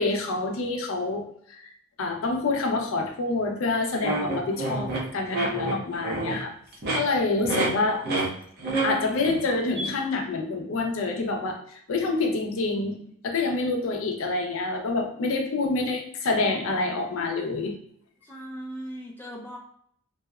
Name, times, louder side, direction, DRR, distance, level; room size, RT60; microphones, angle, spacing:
voice 1, 0.0-1.7 2.0-6.5 6.9-8.1 8.8-17.8, left 3 dB, 75° left, 3 dB, 0.4 m, -27 dB
sound 1, 4.0-6.4 6.7-7.0 7.4-7.7 8.0-8.3 8.6-9.4 9.7-9.9, right 2 dB, 45° right, 0.6 m, -28 dB
voice 2, 18.2-19.6, equal, 10° left, -2 dB, 0.3 m, -39 dB
2.7 x 2.1 x 2.3 m, 0.65 s
head